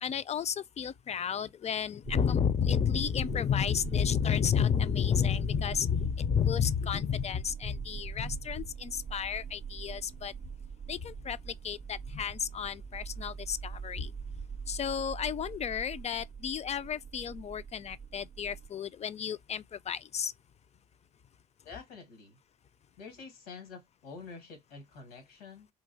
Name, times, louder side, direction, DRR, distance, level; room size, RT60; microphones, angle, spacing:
voice 1, 0.0-10.3 10.9-14.1 14.7-20.3, left 8 dB, 35° left, 0.4 m, -31 dB
sound 1, 2.0-18.7, right 6 dB, 30° right, 0.4 m, -42 dB
voice 2, 21.6-22.4 23.0-25.7, left 4 dB, 90° left, 1.6 m, -47 dB
3.8 x 2.9 x 2.6 m
hypercardioid pair, 60°, 19 cm